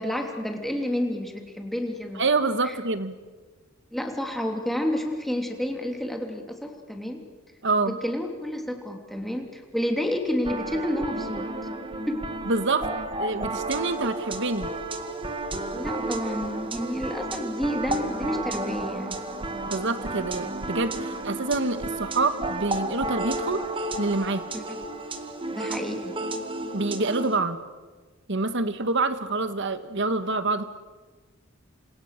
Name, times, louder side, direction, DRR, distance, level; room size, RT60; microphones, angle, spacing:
voice 1, 0.0-2.2 2.6-2.8 3.9-7.3 7.9-11.5 12.1-12.3 15.7-19.3 24.5-24.8 25.5-26.1, left 1 dB, ahead, 3 dB, 3.1 m, -30 dB
voice 2, 2.2-3.2 7.6-8.0 12.4-12.9 13.2-14.7 19.7-23.6 24.0-24.4 26.7-27.6 28.3-30.6, right 3 dB, 60° right, 11 dB, 1.7 m, -26 dB
sound 1, 10.4-27.4, right 2 dB, 25° right, 2.0 m, -32 dB
29.0 x 26.0 x 6.7 m, 1.3 s
head